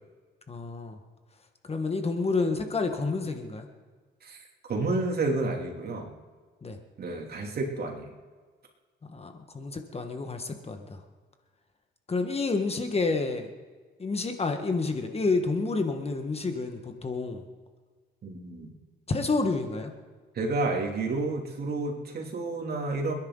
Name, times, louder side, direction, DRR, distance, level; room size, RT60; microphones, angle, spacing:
voice 1, 0.5-1.0 1.7-3.7 6.6-6.8 9.1-11.0 12.1-13.5 14.0-17.4 19.1-19.9, left 3 dB, 30° left, 5 dB, 1.7 m, -29 dB
voice 2, 4.7-6.1 7.0-8.1 18.2-18.7 20.3-23.1, right 3 dB, 50° right, 1 dB, 3.1 m, -30 dB
30.0 x 10.5 x 4.1 m, 1.5 s
cardioid pair, 90°, 20 cm